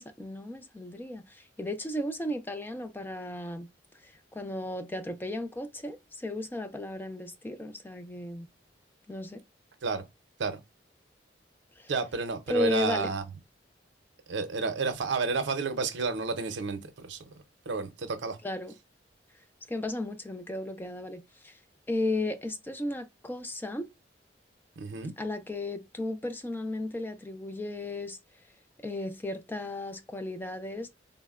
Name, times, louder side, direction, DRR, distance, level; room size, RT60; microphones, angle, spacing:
voice 1, 0.0-3.7 4.0-8.5 9.1-9.4 11.8-11.9 12.5-13.1 18.4-18.7 19.7-21.6 21.9-23.9 25.0-28.2 28.8-30.9, left 1 dB, 10° left, 0.3 m, -34 dB
voice 2, 11.9-13.2 14.3-17.3 17.7-18.4 24.8-25.1, right 4 dB, 90° right, 0.6 m, -31 dB
3.7 x 2.1 x 2.3 m
head